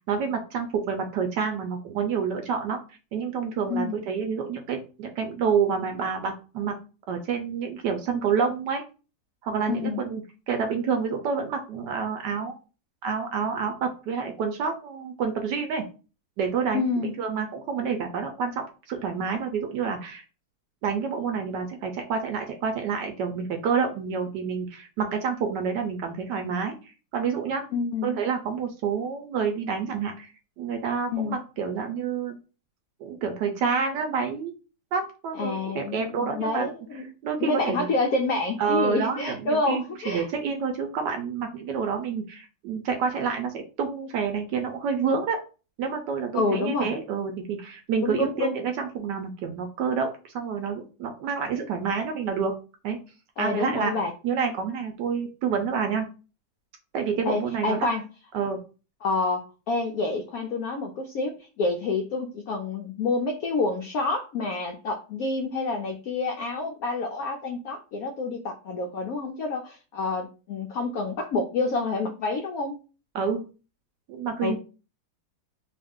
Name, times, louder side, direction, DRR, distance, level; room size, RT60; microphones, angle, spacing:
voice 1, 0.1-2.8 3.1-6.7 7.1-8.8 9.4-12.6 13.0-15.8 16.4-20.2 20.8-26.7 27.1-27.6 28.0-30.3 30.6-32.4 33.0-34.5 34.9-36.7 37.2-37.9 38.6-45.4 45.8-52.6 52.8-53.0 53.4-53.9 54.2-56.0 56.9-57.9 58.3-58.6 73.1-73.4 74.1-74.6, right 6 dB, 75° right, 5 dB, 1.1 m, -28 dB
voice 2, 3.7-4.0 9.7-10.0 16.7-17.1 27.7-28.2 31.1-31.4 35.3-37.0 37.4-40.3 46.3-46.9 48.0-48.5 53.4-54.1 57.2-58.0 59.0-72.7 74.4-74.6, left 3 dB, 85° left, 3 dB, 0.8 m, -28 dB
3.1 x 2.4 x 3.5 m, 0.33 s
omnidirectional pair, 2.1 m